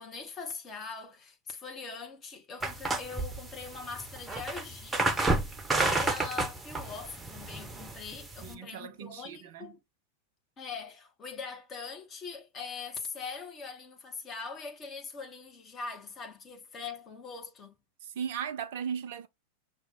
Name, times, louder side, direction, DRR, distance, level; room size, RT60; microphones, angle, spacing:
voice 1, 0.0-5.2 5.8-9.8 10.6-17.8, left 5 dB, 25° left, 1.2 m, -42 dB
sound 1, 2.6-8.5, right 2 dB, 10° right, 0.8 m, -31 dB
voice 2, 8.4-9.7 18.1-19.3, right 8 dB, 55° right, 0.6 m, -37 dB
5.8 x 2.4 x 3.7 m
figure-of-eight pair, 90°, 0 cm